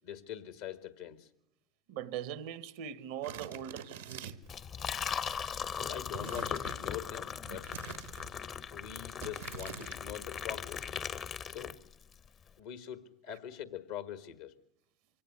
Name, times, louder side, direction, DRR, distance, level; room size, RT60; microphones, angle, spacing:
voice 1, 0.0-1.3 5.7-7.7 8.7-10.9 11.4-11.8 12.6-14.5, left 10 dB, 80° left, 1.8 m, -43 dB
voice 2, 1.9-4.4, right 10 dB, 75° right, 0.9 m, -41 dB
sound 1, 3.2-4.6 6.1-6.9 7.5-8.3 9.2-10.0, right 7 dB, 90° right, 1.2 m, -46 dB
Liquid, 4.4-12.1, left 7 dB, 45° left, 0.9 m, -39 dB
23.5 x 17.5 x 9.7 m
hypercardioid pair, 75°, 0 cm